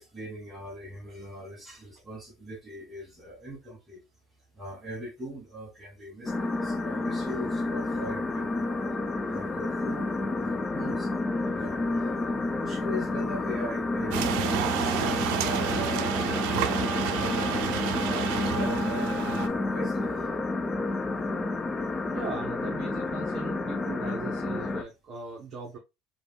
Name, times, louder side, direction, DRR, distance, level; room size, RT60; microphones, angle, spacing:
voice 1, 0.0-4.0 4.5-8.9 9.3-11.1 11.5-16.1 16.6-20.3, equal, 15° right, 1.2 m, -41 dB
sound 1, 6.3-24.8, left 2 dB, 20° left, 0.4 m, -30 dB
sound 2, 14.1-19.5, right 10 dB, 75° right, 0.5 m, -30 dB
voice 2, 22.1-25.8, right 4 dB, 40° right, 1.1 m, -39 dB
3.8 x 2.4 x 3.3 m
cardioid pair, 145°, 0 cm